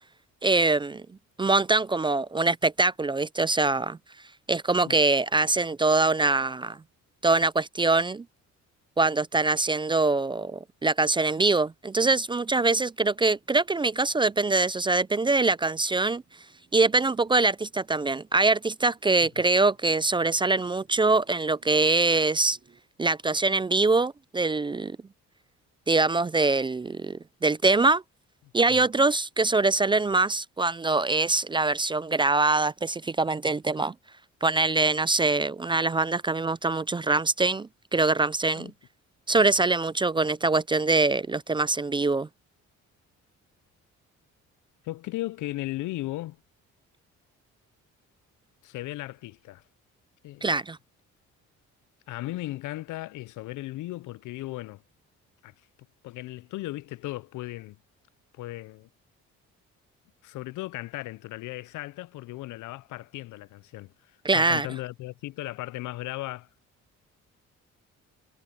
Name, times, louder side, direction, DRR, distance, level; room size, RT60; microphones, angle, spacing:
voice 1, 0.4-1.0 1.4-4.0 4.5-6.8 7.2-8.2 9.0-16.2 16.7-22.6 23.0-25.0 25.9-28.0 28.5-33.9 34.4-38.7 39.3-42.3 50.4-50.8 64.2-64.7, right 3 dB, 15° right, 0.3 m, -23 dB
sound 1, 13.1-22.8, right 5 dB, 35° right, 4.4 m, -64 dB
voice 2, 44.8-46.4 48.6-49.6 50.2-50.5 52.1-54.8 55.4-55.5 56.0-57.8 58.3-58.9 60.2-63.9 64.3-66.5, left 17 dB, 80° left, 0.5 m, -36 dB
cardioid pair, 90°, 30 cm